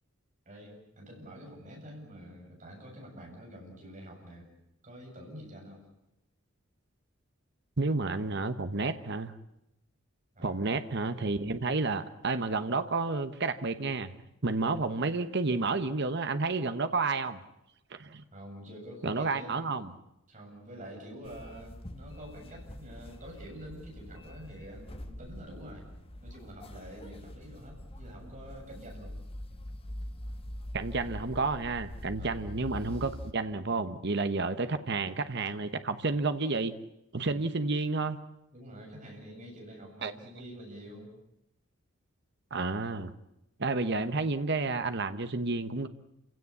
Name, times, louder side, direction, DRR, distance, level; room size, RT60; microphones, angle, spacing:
voice 1, 0.5-4.5 4.8-5.8 10.3-10.7 18.3-19.7 20.3-25.9 26.2-29.1 32.2-32.5 38.5-41.1, equal, 40° right, 0 dB, 7.7 m, -47 dB
voice 2, 7.8-9.3 10.4-14.1 14.4-17.4 17.9-18.2 19.0-19.9 30.7-36.7 37.1-38.2 40.0-40.1 42.5-43.1 43.6-45.9, right 3 dB, 55° right, 9 dB, 1.1 m, -30 dB
sound 1, 21.2-33.3, left 1 dB, 30° left, 1.5 m, -44 dB
28.0 x 17.0 x 8.3 m, 0.87 s
head